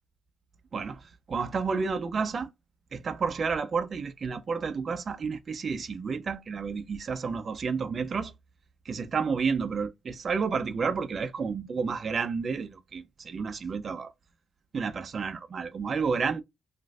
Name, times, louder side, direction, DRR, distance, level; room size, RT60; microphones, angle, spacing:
voice 1, 0.7-2.5 2.9-8.3 8.9-14.1 14.7-16.4, right 5 dB, 45° right, 0.4 m, -31 dB
3.0 x 2.5 x 2.3 m
cardioid pair, 90°, 0 cm